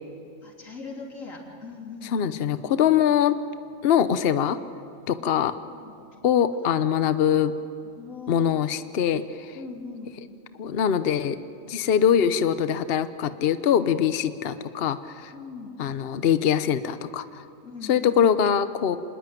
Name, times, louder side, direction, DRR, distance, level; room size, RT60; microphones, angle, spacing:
voice 1, 0.4-2.3 5.7-6.0 7.8-8.7 9.5-10.1 15.3-15.7 17.6-18.2, left 4 dB, 90° left, 0 dB, 3.8 m, -40 dB
voice 2, 2.1-3.4 3.8-4.6 5.1-5.5 6.2-7.5 8.3-9.6 10.6-11.4 11.7-15.3 15.8-17.4 17.9-19.0, left 8 dB, 55° left, 12 dB, 1.0 m, -23 dB
26.5 x 19.5 x 9.2 m, 2.7 s
omnidirectional pair, 1.3 m